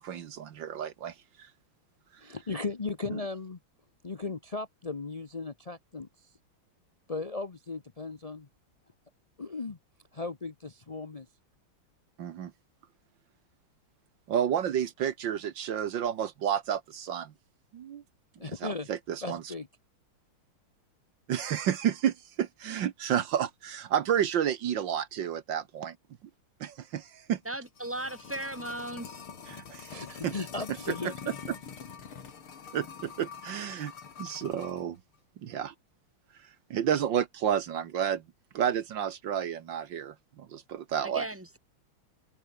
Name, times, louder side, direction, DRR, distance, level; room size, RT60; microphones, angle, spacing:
voice 1, 0.0-1.5 3.1-3.2 12.2-12.5 14.3-17.3 17.7-18.0 18.6-19.4 21.3-26.0 26.6-27.4 29.5-29.9 30.2-30.3 30.9-31.1 32.7-33.9 34.2-35.0 35.4-35.7 36.7-38.2 38.5-41.3, right 9 dB, 65° right, 1.7 m, -31 dB
voice 2, 2.2-3.6 4.0-6.1 7.1-8.5 9.4-9.8 10.1-11.3 18.4-18.9 19.2-19.7 29.9-31.4, left 3 dB, 70° left, 0.3 m, -36 dB
sound 1, 27.4-34.8 35.1-35.2, left 6 dB, 90° left, 3.3 m, -45 dB
voice 3, 27.4-29.3 41.0-41.6, right 1 dB, 5° right, 2.3 m, -37 dB
omnidirectional pair, 2.3 m